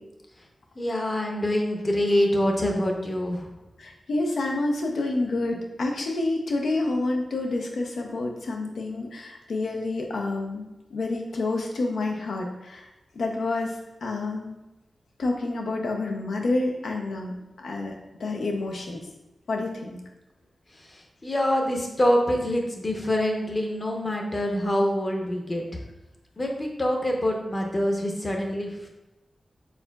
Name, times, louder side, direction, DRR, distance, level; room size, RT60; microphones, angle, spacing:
voice 1, 0.8-3.5 20.9-25.6 26.4-28.9, left 1 dB, 35° left, 1 dB, 0.8 m, -25 dB
voice 2, 3.8-10.6 10.9-12.9 13.2-13.7 14.0-14.6 15.2-17.9 18.2-19.0 19.5-20.0, left 2 dB, 85° left, 1 dB, 0.6 m, -28 dB
4.7 x 3.9 x 2.3 m, 1.0 s
cardioid pair, 65°, 0 cm